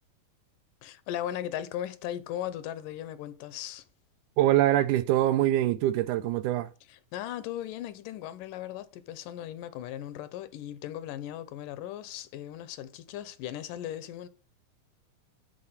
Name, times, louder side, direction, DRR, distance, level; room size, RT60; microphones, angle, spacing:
voice 1, 0.8-3.8 6.9-14.3, left 11 dB, 90° left, 2.4 m, -37 dB
voice 2, 4.4-6.7, right 14 dB, 80° right, 1.9 m, -24 dB
10.5 x 4.3 x 7.2 m
omnidirectional pair, 3.7 m